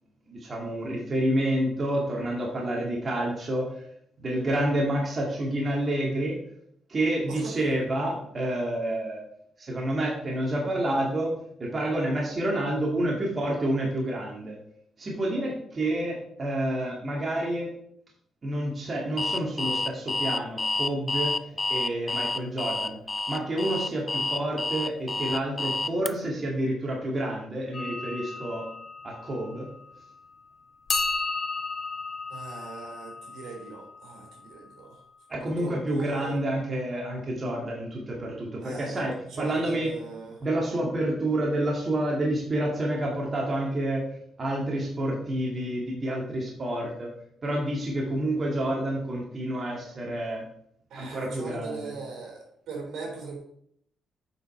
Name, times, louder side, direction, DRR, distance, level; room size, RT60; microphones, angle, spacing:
voice 1, 0.3-3.8 4.2-6.4 6.9-9.2 9.6-11.3 11.6-14.6 15.0-17.7 18.4-23.0 23.3-28.7 29.0-29.7 35.3-39.9 40.4-44.1 44.4-47.1 47.4-50.4 51.0-52.0, right 1 dB, 35° right, -2 dB, 2.1 m, -29 dB
Alarm, 19.2-26.1, left 2 dB, 20° left, 0.4 m, -29 dB
sound 1, 27.7-30.2 30.9-34.8, left 3 dB, 50° left, 1.8 m, -34 dB
voice 2, 32.3-35.0 35.6-36.4 38.6-39.0 39.3-40.4 50.9-53.4, right 4 dB, 80° right, 1 dB, 3.3 m, -39 dB
8.2 x 5.4 x 4.3 m, 0.69 s
cardioid pair, 90°, 0 cm